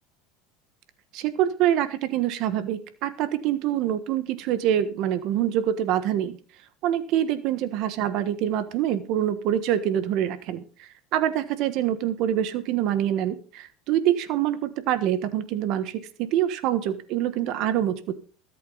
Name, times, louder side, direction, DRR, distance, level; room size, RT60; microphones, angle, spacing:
voice 1, 1.1-6.4 6.8-18.1, right 11 dB, 50° right, 11 dB, 1.4 m, -25 dB
21.5 x 8.5 x 4.0 m, 0.39 s
supercardioid pair, 150°, 0 cm